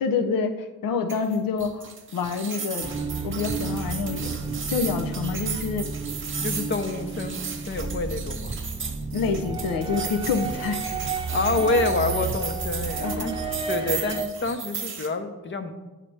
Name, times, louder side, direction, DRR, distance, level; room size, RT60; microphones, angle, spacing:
voice 1, 0.0-2.9 3.2-4.3 4.7-5.9 9.1-11.2 13.0-13.3, left 5 dB, 85° left, 7 dB, 0.7 m, -27 dB
sound 1, 1.1-15.1, right 5 dB, 35° right, 1.1 m, -35 dB
sound 2, 2.8-14.2, right 5 dB, 15° right, 1.0 m, -32 dB
voice 2, 6.4-8.6 11.3-15.7, left 3 dB, 35° left, 7 dB, 0.8 m, -28 dB
8.4 x 6.6 x 3.3 m, 1.1 s
cardioid pair, 110°, 33 cm